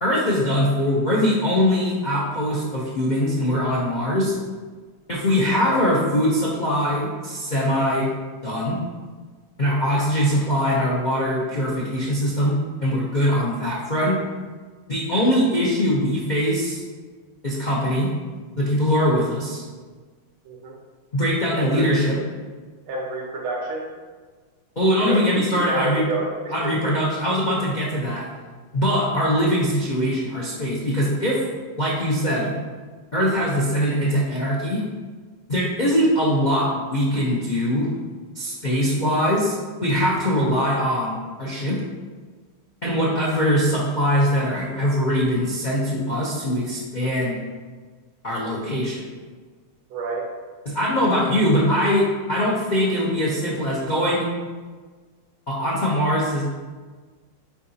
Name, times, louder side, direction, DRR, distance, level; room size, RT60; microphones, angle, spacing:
voice 1, 0.0-4.3 5.1-8.1 8.4-8.8 9.6-14.2 14.9-16.8 17.4-18.1 18.6-19.6 21.1-22.2 24.8-26.0 26.5-28.3 28.7-31.4 31.8-32.5 33.1-34.8 35.5-37.9 38.3-41.8 42.8-47.4 48.2-49.1 50.7-54.3 55.5-56.4, equal, 55° left, -5 dB, 0.5 m, -22 dB
voice 2, 5.5-5.8 9.6-9.7 20.5-20.8 21.5-21.9 22.9-23.9 25.0-26.8 42.9-43.1 49.9-50.3, right 2 dB, 80° right, -1 dB, 2.0 m, -29 dB
7.1 x 4.9 x 2.8 m, 1.4 s
omnidirectional pair, 2.3 m